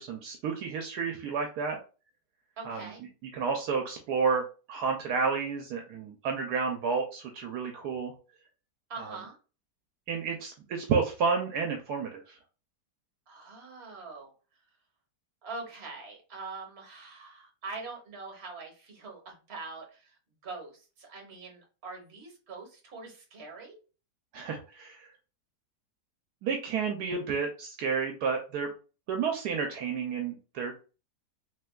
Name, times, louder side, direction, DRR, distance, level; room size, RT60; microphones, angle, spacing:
voice 1, 0.0-1.8 2.6-2.9 3.3-8.1 9.0-9.1 10.1-12.4 24.3-25.1 26.4-28.7 29.1-30.8, right 5 dB, 75° right, 2 dB, 1.1 m, -31 dB
voice 2, 2.6-3.0 8.9-9.4 13.3-14.3 15.4-23.8, right 3 dB, 40° right, 1 dB, 1.3 m, -43 dB
3.3 x 3.2 x 2.2 m, 0.33 s
omnidirectional pair, 1.8 m